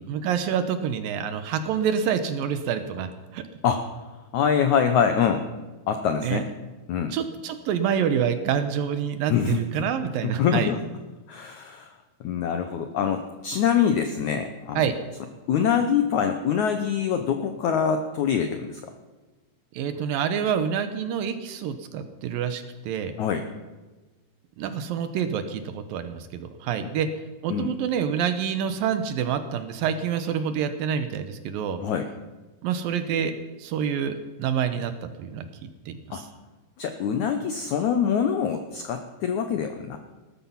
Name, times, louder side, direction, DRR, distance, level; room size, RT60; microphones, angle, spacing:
voice 1, 0.0-3.4 6.2-6.4 7.1-10.7 14.8-14.9 19.7-23.2 24.6-27.1 27.4-31.8 32.6-35.5 35.9-36.3, right 8 dB, 75° right, 9 dB, 2.4 m, -27 dB
voice 2, 4.3-5.5 5.9-6.5 6.9-7.2 9.3-9.6 10.2-10.8 11.3-11.9 12.2-14.8 15.5-18.8 23.2-23.4 27.5-27.7 31.8-32.1 36.1-36.2 36.8-40.0, left 7 dB, 80° left, 7 dB, 1.7 m, -24 dB
18.5 x 13.0 x 5.7 m, 1.2 s
omnidirectional pair, 4.6 m